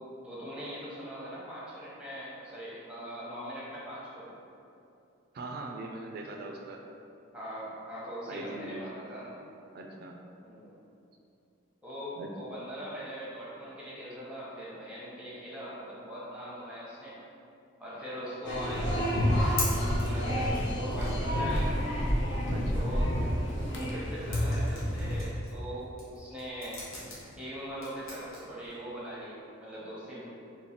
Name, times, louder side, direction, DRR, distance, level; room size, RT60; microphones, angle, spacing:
voice 1, 0.2-4.3 7.3-9.3 10.4-10.7 11.8-17.1 17.8-21.8 22.7-23.1 23.7-26.8 27.4-30.2, equal, 5° right, -8 dB, 0.8 m, -41 dB
voice 2, 5.3-6.8 8.3-8.8 9.7-10.2 12.2-12.3 22.5-22.9, right 2 dB, 45° right, 1 dB, 0.3 m, -41 dB
sound 1, 18.4-25.2, equal, 55° left, 0.6 m, -29 dB
sound 2, 19.3-29.1, left 2 dB, 85° left, 1.2 m, -43 dB
3.1 x 3.1 x 4.2 m, 2.7 s
head